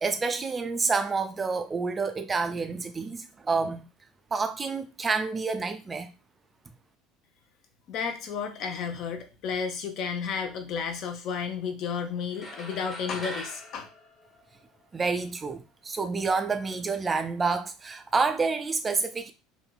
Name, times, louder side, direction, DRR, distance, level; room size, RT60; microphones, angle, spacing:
voice 1, 0.0-3.9 4.3-6.1 14.9-19.3, right 4 dB, 25° right, 0.3 m, -28 dB
voice 2, 7.9-13.9, left 6 dB, 45° left, 0.5 m, -32 dB
sound 1, 12.3-15.0, left 1 dB, 25° left, 1.1 m, -41 dB
2.8 x 2.7 x 2.3 m
figure-of-eight pair, 65°, 0 cm